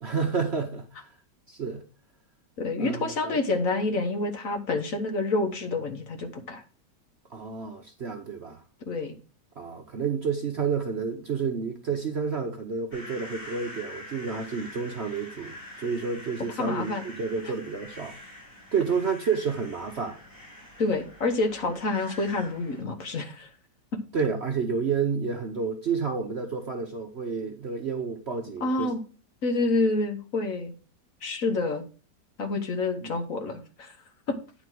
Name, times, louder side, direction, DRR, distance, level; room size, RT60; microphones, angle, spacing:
voice 1, 0.0-1.1 1.5-1.8 2.8-3.4 7.3-8.6 9.6-18.2 18.7-20.2 24.1-28.9 33.0-33.1, right 5 dB, 50° right, 0.9 m, -30 dB
voice 2, 2.6-6.6 8.9-9.2 16.6-17.0 20.8-23.5 28.6-29.0 29.4-30.7 31.2-31.9 32.4-34.0 34.3-34.4, left 3 dB, 55° left, 1.5 m, -28 dB
sound 1, 12.9-22.8, left 1 dB, 30° left, 4.9 m, -45 dB
9.5 x 4.2 x 6.1 m
omnidirectional pair, 1.8 m